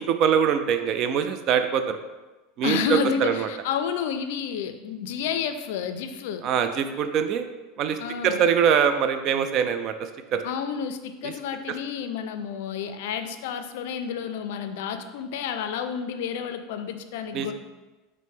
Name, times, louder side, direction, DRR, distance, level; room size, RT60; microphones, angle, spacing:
voice 1, 0.0-2.0 2.6-3.5 6.4-7.4 7.8-8.0 8.2-9.9 10.3-10.4 11.2-11.3 17.3-17.5, right 8 dB, 45° right, 8 dB, 0.3 m, -23 dB
voice 2, 2.6-6.5 8.0-8.4 10.4-17.5, left 7 dB, 75° left, 9 dB, 0.3 m, -30 dB
5.2 x 2.1 x 3.6 m, 1.2 s
supercardioid pair, 135°, 0 cm